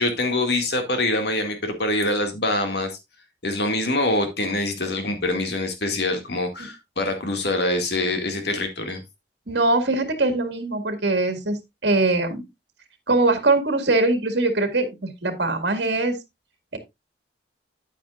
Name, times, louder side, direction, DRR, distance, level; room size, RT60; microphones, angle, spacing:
voice 1, 0.0-2.9 3.4-9.0, left 2 dB, 65° left, 5 dB, 2.1 m, -24 dB
voice 2, 9.5-12.5 13.1-16.2, right 2 dB, 65° right, 7 dB, 2.0 m, -22 dB
9.7 x 9.2 x 2.4 m, 0.20 s
head